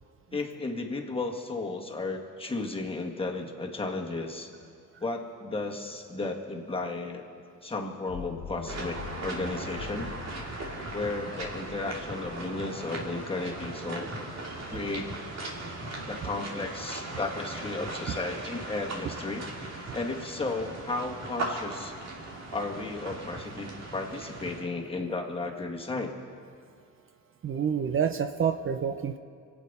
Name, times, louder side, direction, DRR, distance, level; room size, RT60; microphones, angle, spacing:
voice 1, 0.3-4.5 5.0-7.2 7.6-10.1 10.9-14.1 14.7-15.1 16.1-19.4 19.9-21.9 22.5-26.2, left 3 dB, 20° left, 1 dB, 1.8 m, -34 dB
sound 1, 8.1-13.1, left 6 dB, 85° left, 1.1 m, -44 dB
sound 2, 8.7-24.6, right 2 dB, 60° right, 3.0 m, -38 dB
voice 2, 27.4-29.2, right 7 dB, 45° right, 8 dB, 0.7 m, -28 dB
24.5 x 8.7 x 5.6 m, 2.3 s
cardioid pair, 90°, 30 cm